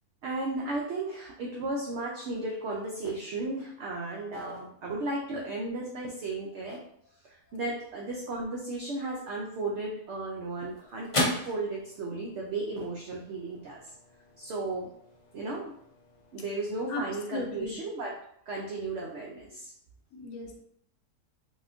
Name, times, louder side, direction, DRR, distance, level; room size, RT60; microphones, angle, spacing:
voice 1, 0.2-6.8 7.2-13.8 14.4-14.9 15.3-15.7 16.3-18.2 18.5-19.7, right 2 dB, 70° right, -2 dB, 0.7 m, -34 dB
sound 1, 9.8-18.4, left 1 dB, 40° left, 0.4 m, -39 dB
voice 2, 17.3-17.8 20.1-20.6, left 3 dB, 85° left, 1 dB, 1.1 m, -36 dB
4.1 x 2.2 x 2.5 m, 0.69 s
omnidirectional pair, 1.6 m